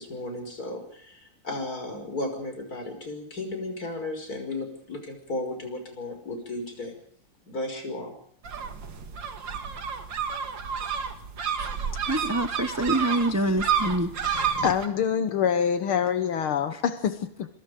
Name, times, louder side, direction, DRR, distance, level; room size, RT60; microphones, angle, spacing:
voice 1, 0.0-7.0 7.5-8.1, left 2 dB, 40° left, 6.1 m, -34 dB
sound 1, 8.4-14.9, right 7 dB, 60° right, 2.5 m, -30 dB
voice 2, 12.0-14.1 16.7-16.8, right 1 dB, 10° right, 0.8 m, -26 dB
voice 3, 14.2-17.5, left 8 dB, 75° left, 2.0 m, -26 dB
26.5 x 23.5 x 5.2 m
omnidirectional pair, 2.4 m